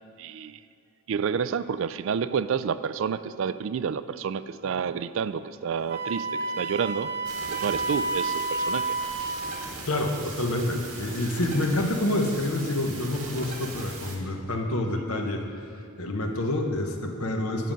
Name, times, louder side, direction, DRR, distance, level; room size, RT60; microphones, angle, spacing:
voice 1, 0.2-0.6 1.1-7.1 7.5-9.0, right 7 dB, 60° right, 14 dB, 0.3 m, -29 dB
Wind instrument woodwind instrument, 5.9-9.4, right 3 dB, 45° right, 0.8 m, -30 dB
sound 1, 7.2-14.2, right 3 dB, 90° right, 1.7 m, -39 dB
voice 2, 9.9-15.4 16.0-17.7, left 1 dB, 85° left, 3 dB, 1.0 m, -27 dB
9.2 x 7.5 x 5.2 m, 2.8 s
head